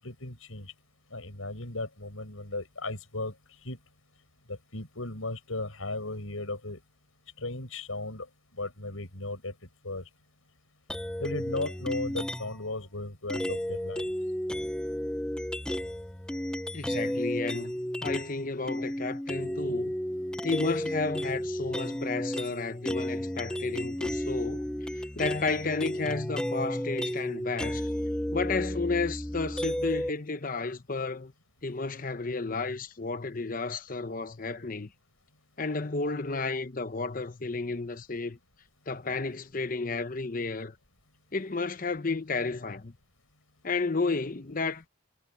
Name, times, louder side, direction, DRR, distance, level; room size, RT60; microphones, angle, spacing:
voice 1, 0.0-0.7 1.1-3.8 4.5-6.8 7.4-8.3 8.6-9.5 9.8-10.0 11.2-14.1, left 2 dB, 90° left, 7.8 m, -36 dB
sound 1, 10.9-12.6 13.3-18.4 18.7-30.1, equal, 5° left, 0.5 m, -33 dB
voice 2, 16.7-17.7 18.0-19.9 20.4-24.6 25.2-27.9 28.3-31.3 31.6-34.9 35.6-38.4 38.9-40.7 41.3-42.9 43.6-44.9, left 3 dB, 40° left, 0.9 m, -32 dB
head